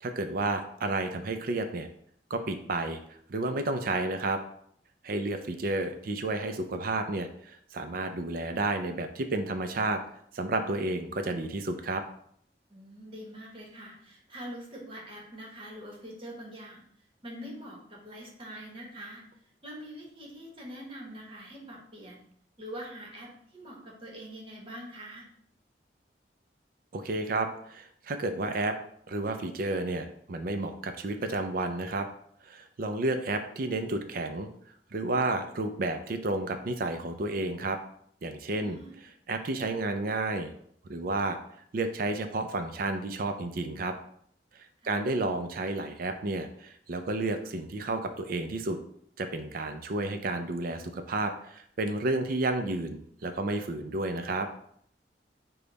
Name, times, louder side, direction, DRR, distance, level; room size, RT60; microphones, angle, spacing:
voice 1, 0.0-1.9 2.3-3.0 3.3-4.4 5.0-10.0 10.3-12.0 26.9-28.8 29.1-32.1 32.4-34.5 34.9-37.8 38.2-38.8 39.3-40.5 40.9-41.4 41.7-43.9 44.5-48.8 49.2-54.5, right 2 dB, 55° right, 7 dB, 0.4 m, -31 dB
voice 2, 12.7-16.9 17.2-19.2 19.6-22.2 22.6-25.3 38.5-39.0 44.8-45.0, equal, 30° right, -1 dB, 1.2 m, -44 dB
5.1 x 2.3 x 4.0 m, 0.65 s
head